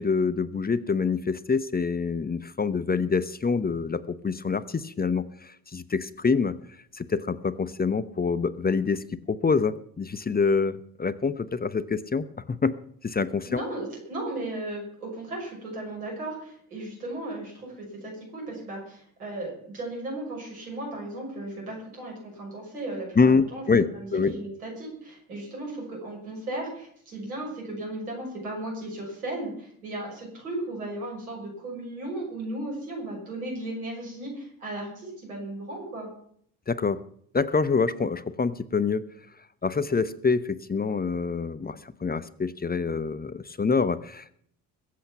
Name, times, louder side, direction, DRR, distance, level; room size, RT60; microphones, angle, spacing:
voice 1, 0.0-6.6 7.0-12.8 13.0-13.6 23.2-24.4 36.7-37.0 37.3-39.0 39.6-44.3, left 5 dB, 20° left, 15 dB, 0.9 m, -26 dB
voice 2, 13.5-36.1, right 1 dB, 85° right, -1 dB, 6.3 m, -36 dB
21.5 x 8.1 x 5.9 m, 0.64 s
figure-of-eight pair, 50°, 43 cm